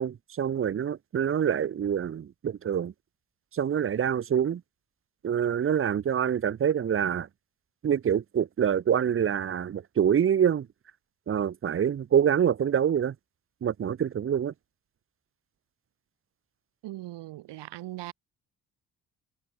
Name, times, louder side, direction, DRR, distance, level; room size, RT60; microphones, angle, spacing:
voice 1, 0.0-2.9 3.5-4.6 5.2-7.3 7.8-10.7 11.3-13.1 13.6-14.5, right 8 dB, 35° right, 0.6 m, -26 dB
voice 2, 16.8-18.1, right 16 dB, 90° right, 2.0 m, -39 dB
cardioid pair, 80°, 41 cm